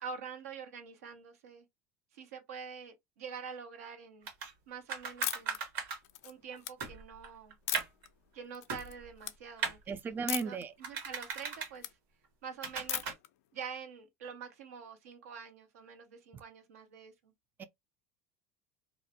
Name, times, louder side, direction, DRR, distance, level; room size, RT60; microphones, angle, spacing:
voice 1, 0.0-1.6 2.1-4.3 4.7-5.6 6.2-7.6 8.3-9.9 10.4-12.0 12.4-13.1 13.5-17.3, right 6 dB, 85° right, 0.7 m, -46 dB
sound 1, 4.3-4.5 4.9-6.0 6.5-6.6 6.8-8.1 8.7-9.2 9.6-9.8 10.8-11.7 12.6-13.1, right 6 dB, 65° right, 1.3 m, -37 dB
sound 2, 5.2-5.6 6.0-6.7 7.7-8.1 8.5-8.9 9.2-9.4 10.3-10.6 11.0-11.9 12.9-13.3, left 14 dB, 75° left, 0.3 m, -37 dB
voice 2, 9.9-10.7 17.6-17.7, right 4 dB, 25° right, 0.4 m, -35 dB
2.5 x 2.1 x 2.8 m
hypercardioid pair, 90°, 8 cm